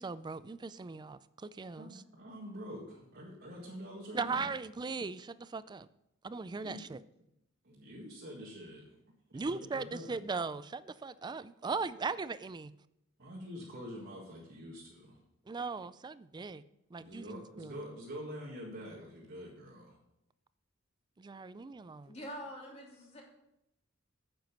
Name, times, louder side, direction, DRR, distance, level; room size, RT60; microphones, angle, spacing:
voice 1, 0.0-2.0 4.1-5.9 6.2-7.0 9.3-12.7 15.5-16.6 16.9-17.8 21.2-22.1, right 4 dB, 20° right, 16 dB, 0.3 m, -39 dB
voice 2, 1.8-4.4 6.6-6.8 7.6-9.0 9.3-10.1 13.2-15.2 17.0-20.0, equal, 55° right, -4 dB, 1.8 m, -46 dB
voice 3, 22.1-23.2, equal, 30° left, -3 dB, 3.1 m, -45 dB
9.2 x 7.9 x 5.3 m, 0.83 s
head